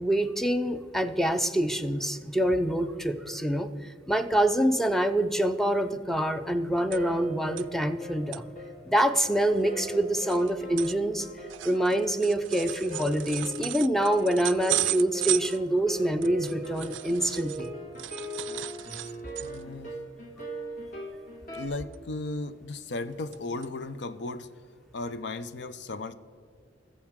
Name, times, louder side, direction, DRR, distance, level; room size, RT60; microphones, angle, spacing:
voice 1, 0.0-8.4 8.9-11.3 11.6-17.7, right 1 dB, ahead, 9 dB, 0.5 m, -26 dB
sound 1, 6.0-6.1 6.3-7.3 7.6-7.7 8.1-8.4 8.9-9.0 9.2-17.7 18.0-19.7 20.1-20.3 20.6-20.9 21.9-22.5 22.9-23.4 23.6-23.7 24.3-24.4, right 15 dB, 80° right, 0.4 m, -35 dB
sound 2, 6.9-21.7, left 1 dB, 45° left, 2.0 m, -40 dB
voice 2, 19.4-20.0 21.5-24.5 24.9-26.1, left 2 dB, 65° left, 12 dB, 0.6 m, -35 dB
19.5 x 7.2 x 3.6 m, 2.1 s
head